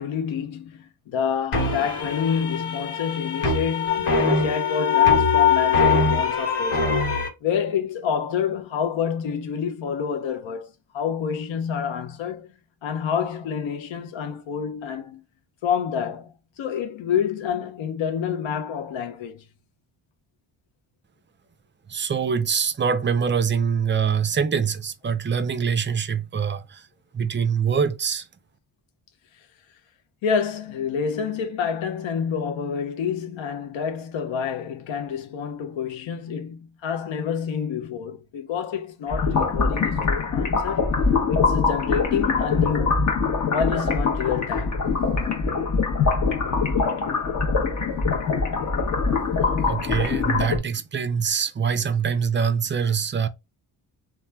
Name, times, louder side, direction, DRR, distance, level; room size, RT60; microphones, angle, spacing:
voice 1, 0.0-6.9 7.4-12.5 12.8-15.2 15.6-16.3 16.6-19.4 30.2-40.9 41.3-43.1 43.4-44.8, left 7 dB, 65° left, 0.7 m, -28 dB
sound 1, 1.5-7.3, left 5 dB, 85° left, 1.0 m, -22 dB
voice 2, 21.9-26.8 27.1-28.2 49.7-53.3, right 6 dB, 25° right, 0.4 m, -24 dB
sound 2, 39.1-50.6, left 4 dB, 35° left, 0.8 m, -23 dB
3.1 x 2.2 x 2.2 m
cardioid pair, 60°, 50 cm